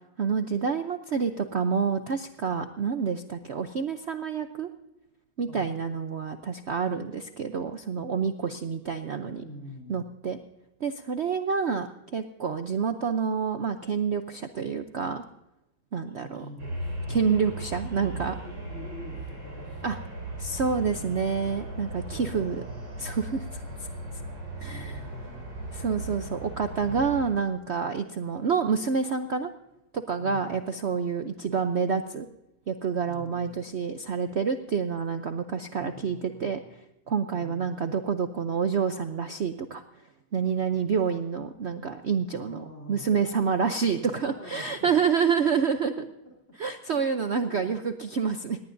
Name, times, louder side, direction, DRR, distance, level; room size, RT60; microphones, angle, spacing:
voice 1, 0.2-4.7 5.4-9.4 9.9-10.4 10.8-11.9 12.1-15.2 15.9-16.5 17.1-18.3 19.8-20.0 20.4-22.6 23.0-23.6 24.6-25.0 25.7-29.5 29.9-32.3 32.7-36.6 37.1-39.8 40.3-46.1 46.6-48.6, right 6 dB, 70° right, 8 dB, 0.6 m, -28 dB
voice 2, 9.4-10.1 16.1-17.3 18.0-20.2 20.9-23.1 23.7-23.9 24.7-25.8 26.8-27.1 30.2-30.6 33.1-33.6 35.8-36.7 37.3-38.0 42.4-43.1 43.9-45.6 45.9-46.1 46.9-47.2 47.5-47.7, left 1 dB, 35° left, -3 dB, 3.6 m, -46 dB
sound 1, 16.6-27.3, right 1 dB, 85° right, 7.5 m, -37 dB
18.5 x 18.5 x 2.6 m, 0.93 s
omnidirectional pair, 2.1 m